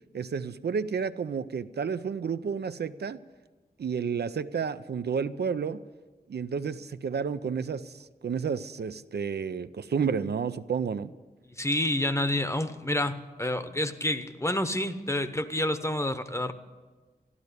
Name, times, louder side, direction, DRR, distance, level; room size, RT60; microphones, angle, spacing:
voice 1, 0.1-3.2 3.8-5.8 6.3-11.1, right 6 dB, 85° right, 11 dB, 0.5 m, -31 dB
voice 2, 11.5-16.5, left 1 dB, 15° left, 10 dB, 0.9 m, -29 dB
12.5 x 12.0 x 8.1 m, 1.3 s
wide cardioid pair, 70°, 17 cm